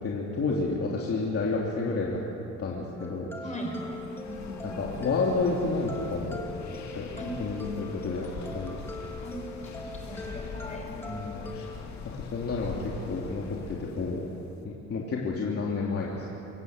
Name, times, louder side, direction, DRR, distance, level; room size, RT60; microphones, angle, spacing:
voice 1, 0.0-2.2 2.6-3.3 4.7-6.4 6.9-8.3 8.5-8.7 11.1-11.6 12.2-12.7 13.1-14.2 14.6-16.3, left 3 dB, 50° left, -3 dB, 3.0 m, -30 dB
sound 1, 3.0-11.8, left 2 dB, 10° left, 2.9 m, -42 dB
voice 2, 3.4-4.9 7.2-7.3 9.2-9.3 9.6-11.4, left 1 dB, 25° left, 0 dB, 5.8 m, -40 dB
sound 2, 3.7-14.5, left 4 dB, 65° left, 2.4 m, -42 dB
26.0 x 14.0 x 8.1 m, 3.0 s
cardioid pair, 90°, 30 cm